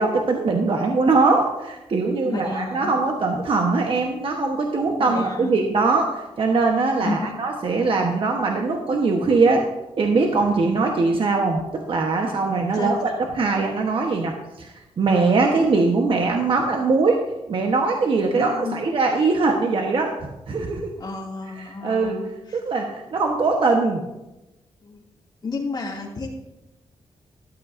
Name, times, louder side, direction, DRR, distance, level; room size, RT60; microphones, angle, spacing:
voice 1, 0.0-9.6 10.0-17.2 17.5-20.1 20.5-20.9 21.6-22.2 22.5-24.0, right 3 dB, 55° right, 2 dB, 1.3 m, -21 dB
voice 2, 2.2-3.0 5.0-5.5 7.0-7.5 12.7-13.1 18.3-18.9 21.0-22.6 24.8-25.0 25.4-26.3, left 4 dB, 40° left, -2 dB, 2.8 m, -32 dB
13.5 x 11.5 x 2.8 m, 0.98 s
cardioid pair, 80°, 11 cm